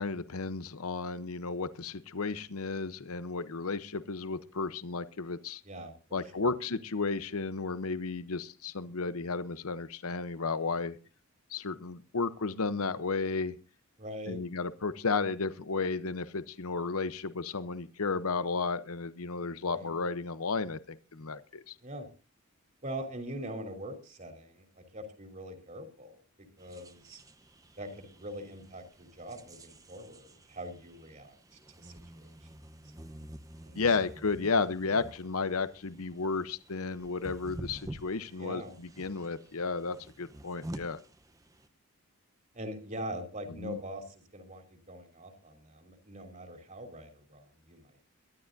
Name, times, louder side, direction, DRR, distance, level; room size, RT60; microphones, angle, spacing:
voice 1, 0.0-5.6 6.1-11.0 11.5-13.6 14.3-21.7 33.8-41.0 43.6-43.8, left 4 dB, 75° left, 13 dB, 0.8 m, -33 dB
voice 2, 5.6-6.5 14.0-14.4 19.6-20.0 21.8-22.1 22.8-27.2 27.8-32.3 32.8-32.9 33.6-33.8 38.4-38.7 42.5-48.0, equal, 35° right, 5 dB, 3.1 m, -43 dB
sound 1, 26.6-41.7, right 1 dB, 15° right, 0.8 m, -49 dB
23.0 x 12.5 x 2.6 m, 0.34 s
head